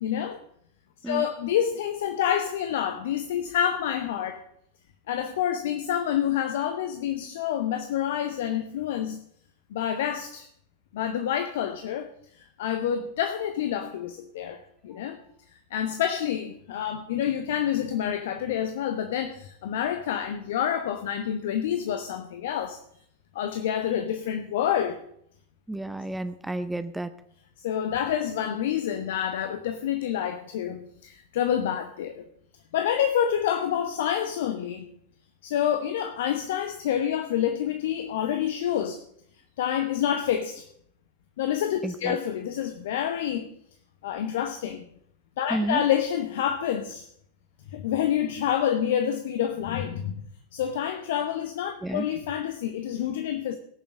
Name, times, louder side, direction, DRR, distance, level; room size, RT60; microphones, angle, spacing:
voice 1, 0.0-0.4 1.0-4.4 5.1-9.2 9.7-10.5 10.9-12.1 12.4-15.2 15.5-22.8 23.3-25.0 27.6-32.3 32.7-34.8 35.4-39.0 39.6-40.7 41.4-43.5 44.0-44.8 45.4-47.1 47.7-50.2 50.5-53.6, left 9 dB, 55° left, 1.1 m, -28 dB
voice 2, 25.7-27.1 41.8-42.2 45.5-45.8 51.8-52.1, right 1 dB, 5° right, 0.7 m, -31 dB
17.5 x 7.1 x 6.5 m
figure-of-eight pair, 90°, 0 cm